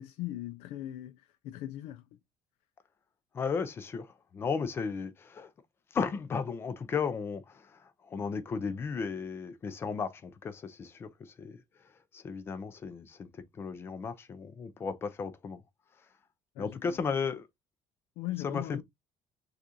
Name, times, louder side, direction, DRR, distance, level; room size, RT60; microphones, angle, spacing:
voice 1, 0.0-2.0 16.6-17.0 18.2-18.8, left 14 dB, 85° left, 0.4 m, -39 dB
voice 2, 3.3-5.5 5.9-15.6 16.6-17.5 18.4-18.8, left 5 dB, 25° left, 0.5 m, -35 dB
6.3 x 2.5 x 2.7 m
cardioid pair, 175°, 10 cm